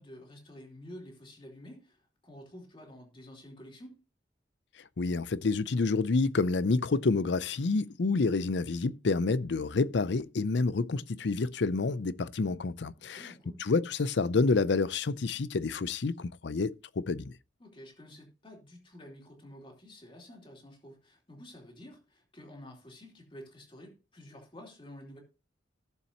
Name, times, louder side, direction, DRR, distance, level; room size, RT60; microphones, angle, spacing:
voice 1, 0.0-3.9 13.0-13.6 17.6-25.2, left 1 dB, 30° left, 3.0 m, -50 dB
voice 2, 5.0-13.3 13.6-17.3, left 3 dB, 65° left, 0.5 m, -28 dB
16.5 x 7.0 x 2.9 m
head